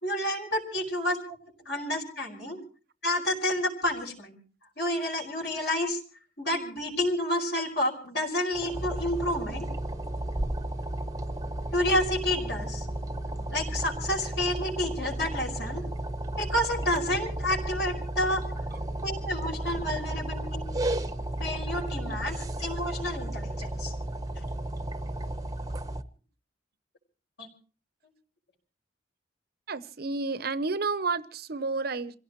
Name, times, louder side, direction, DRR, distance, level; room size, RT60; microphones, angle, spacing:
voice 1, 0.0-1.4 1.7-2.6 3.0-4.4 4.8-6.0 6.4-9.7 11.7-12.9 13.5-15.8 16.4-18.4 19.0-20.7 21.4-23.9 27.4-27.5, left 1 dB, 60° left, 5.2 m, -29 dB
sound 1, 8.5-26.0, right 1 dB, 20° right, 0.8 m, -33 dB
voice 2, 29.7-32.1, right 4 dB, 55° right, 0.8 m, -31 dB
27.5 x 16.5 x 3.0 m
head